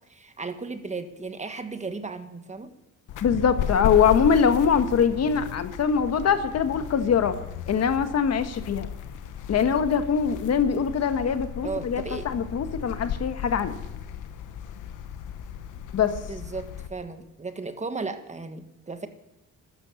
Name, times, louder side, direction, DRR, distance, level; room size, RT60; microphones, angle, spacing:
voice 1, 0.1-2.7 11.6-12.3 16.3-19.1, right 3 dB, 25° right, 8 dB, 1.5 m, -35 dB
sound 1, 3.1-16.9, left 8 dB, 85° left, 1.1 m, -35 dB
voice 2, 3.2-7.4 7.7-8.9 9.5-13.8 15.9-16.1, left 7 dB, 55° left, 9 dB, 1.4 m, -23 dB
14.0 x 12.5 x 7.1 m, 0.91 s
cardioid pair, 90°, 30 cm